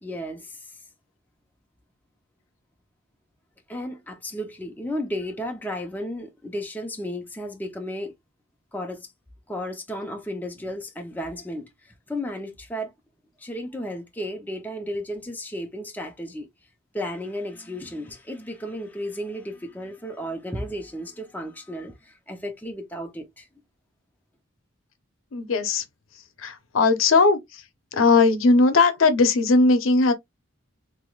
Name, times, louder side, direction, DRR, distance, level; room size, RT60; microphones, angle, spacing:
voice 1, 0.0-0.7 3.7-8.1 8.7-9.1 9.5-11.7 12.1-12.9 13.4-16.5 16.9-23.5, equal, 10° left, 0.6 m, -33 dB
voice 2, 25.3-25.8 26.4-27.4 27.9-30.1, left 3 dB, 80° left, 0.7 m, -18 dB
3.4 x 3.0 x 2.3 m
head